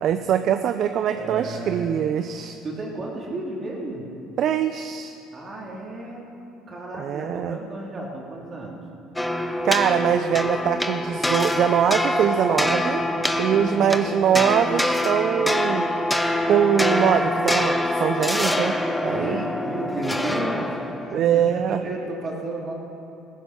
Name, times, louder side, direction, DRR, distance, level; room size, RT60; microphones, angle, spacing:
voice 1, 0.0-2.6 4.4-5.1 7.0-7.6 9.6-13.0 13.4-15.9 16.5-18.8 19.0-19.4 21.1-21.8, right 9 dB, 55° right, 9 dB, 0.6 m, -22 dB
voice 2, 1.1-1.9 2.6-4.0 5.3-6.2 6.7-8.8 13.0-13.9 19.1-22.7, right 2 dB, 35° right, -2 dB, 3.4 m, -33 dB
sound 1, 9.2-21.1, left 1 dB, 5° left, 0.9 m, -25 dB
15.5 x 15.0 x 6.1 m, 2.9 s
supercardioid pair, 100°, 0 cm